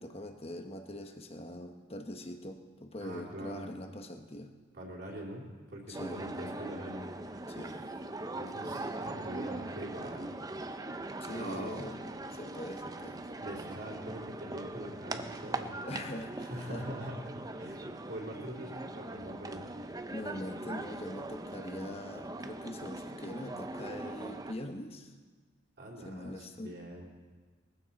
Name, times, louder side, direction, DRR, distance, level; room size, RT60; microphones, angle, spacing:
voice 1, 0.0-4.5 5.9-6.2 7.5-7.8 11.2-12.1 12.3-13.2 15.8-16.8 20.1-25.1 26.0-26.8, left 1 dB, 30° left, 5 dB, 1.1 m, -42 dB
voice 2, 3.0-3.7 4.7-7.1 8.3-10.3 11.3-11.9 13.4-15.8 16.4-19.7 25.8-27.1, right 1 dB, 55° right, -4 dB, 3.2 m, -43 dB
sound 1, 5.9-24.5, right 2 dB, 20° right, 0.6 m, -41 dB
20.5 x 15.5 x 4.2 m, 1.4 s
head